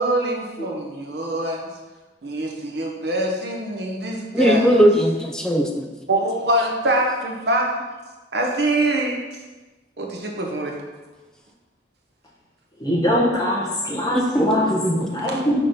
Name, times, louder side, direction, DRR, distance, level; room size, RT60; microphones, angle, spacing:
voice 1, 0.0-1.7 2.2-4.7 6.1-7.8 8.3-9.2 10.0-10.7 15.3-15.5, right 1 dB, 60° right, 0 dB, 1.0 m, -24 dB
voice 2, 4.3-5.9 14.1-15.1, equal, 5° left, 2 dB, 0.5 m, -19 dB
voice 3, 12.8-14.7 15.1-15.6, equal, 20° left, -4 dB, 1.3 m, -22 dB
5.9 x 3.7 x 5.2 m, 1.2 s
head